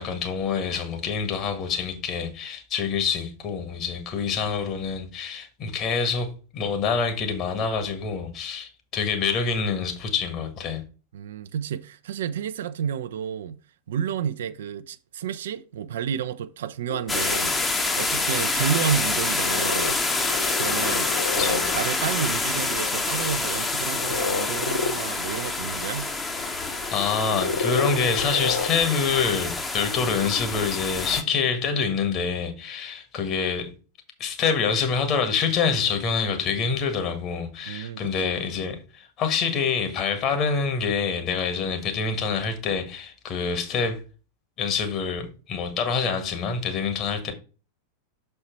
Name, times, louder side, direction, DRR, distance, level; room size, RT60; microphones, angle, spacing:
voice 1, 0.0-6.3 6.5-10.8 21.1-21.7 26.7-33.7 34.2-44.0 44.6-47.3, left 5 dB, 35° left, 1.7 m, -26 dB
voice 2, 11.1-13.6 13.9-17.6 18.0-20.0 20.6-26.1 37.7-38.7, right 8 dB, 60° right, 0.4 m, -31 dB
sound 1, 16.9-29.1, left 4 dB, 75° left, 0.9 m, -33 dB
sound 2, 17.1-31.2, left 3 dB, 15° left, 0.9 m, -27 dB
6.5 x 4.3 x 4.6 m
figure-of-eight pair, 90°, 0 cm